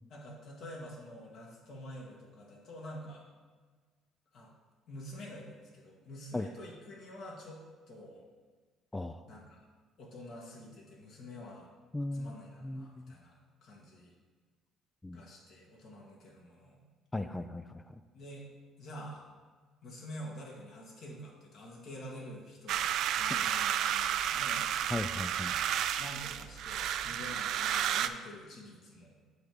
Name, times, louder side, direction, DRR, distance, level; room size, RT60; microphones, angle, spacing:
voice 1, 0.1-3.2 4.3-4.5 4.9-7.6 7.9-8.3 9.3-9.7 10.0-11.7 12.1-14.2 15.1-16.8 18.1-18.4 18.8-19.3 19.8-24.7 26.0-29.2, equal, 65° left, -2 dB, 2.0 m, -47 dB
voice 2, 11.9-12.3 12.6-13.1 15.0-15.2 17.1-18.0 24.9-25.5, left 2 dB, 15° left, 9 dB, 0.4 m, -37 dB
sound 1, 22.7-28.1, right 10 dB, 70° right, 0.3 m, -32 dB
7.8 x 3.5 x 6.2 m, 1.5 s
hypercardioid pair, 65°, 0 cm